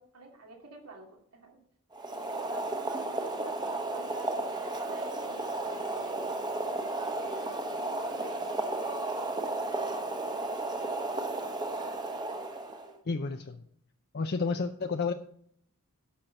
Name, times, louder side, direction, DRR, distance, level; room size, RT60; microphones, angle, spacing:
voice 1, 0.0-1.6 2.1-4.3 4.8-6.3 6.7-10.3, right 2 dB, 85° right, 0 dB, 2.7 m, -50 dB
Boiling, 1.9-12.9, right 2 dB, 20° right, 1.0 m, -33 dB
voice 2, 12.8-13.6 14.1-15.1, left 4 dB, 45° left, 6 dB, 0.6 m, -31 dB
11.5 x 5.7 x 6.5 m, 0.67 s
head